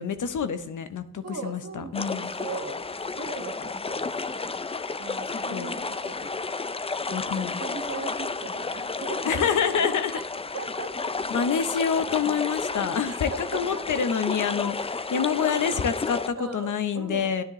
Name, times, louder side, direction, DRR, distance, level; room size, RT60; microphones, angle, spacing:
voice 1, 0.0-2.3 4.7-5.0 5.5-5.7 7.1-7.6 9.3-10.1 11.3-17.4, left 7 dB, 70° left, 10 dB, 0.8 m, -27 dB
voice 2, 1.2-2.8 3.2-4.4 5.0-6.3 7.1-10.2 10.5-11.2 13.0-14.1 15.1-15.8 16.4-17.4, right 4 dB, 50° right, 4 dB, 1.5 m, -39 dB
sound 1, 1.9-16.3, left 4 dB, 20° left, 0.4 m, -32 dB
10.0 x 10.0 x 3.1 m, 0.75 s
cardioid pair, 70°, 32 cm